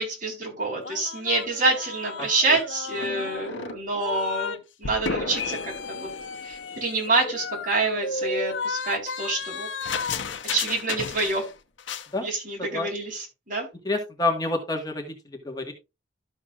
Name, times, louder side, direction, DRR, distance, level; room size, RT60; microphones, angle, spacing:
voice 1, 0.0-6.1 6.4-9.9 10.4-11.4 12.2-13.7, right 3 dB, 45° right, 0 dB, 4.2 m, -27 dB
sound 1, 0.8-4.6 4.8-11.5 11.8-12.1, left 4 dB, 85° left, 0.9 m, -33 dB
voice 2, 13.8-15.7, left 2 dB, 20° left, 2 dB, 1.5 m, -28 dB
12.5 x 7.0 x 2.4 m, 0.25 s
head